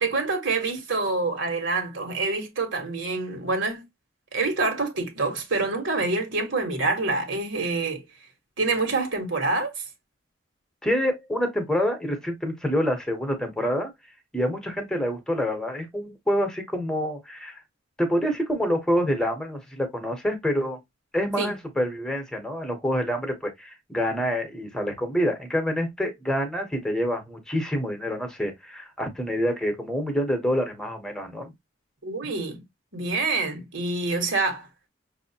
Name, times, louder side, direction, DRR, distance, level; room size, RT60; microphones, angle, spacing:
voice 1, 0.0-3.8 4.3-8.0 8.6-9.7 21.4-21.5 32.0-32.6 32.9-34.7, right 3 dB, 65° right, 1.6 m, -26 dB
voice 2, 10.8-13.9 14.3-17.6 18.0-20.8 21.1-31.5, equal, 5° left, 1.1 m, -27 dB
6.0 x 2.7 x 2.9 m
head